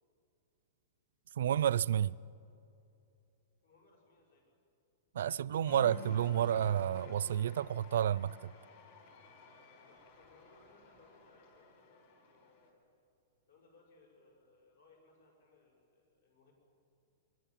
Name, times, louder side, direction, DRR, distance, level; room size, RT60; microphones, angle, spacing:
voice 1, 1.4-2.1 5.1-8.5, right 10 dB, 70° right, 0.4 m, -30 dB
voice 2, 3.6-4.5 9.6-12.9 13.5-16.5, left 3 dB, 70° left, 6.1 m, -66 dB
Cheering, 5.6-12.7, left 4 dB, 45° left, 4.3 m, -53 dB
23.0 x 21.0 x 7.5 m
supercardioid pair, 180°, 0 cm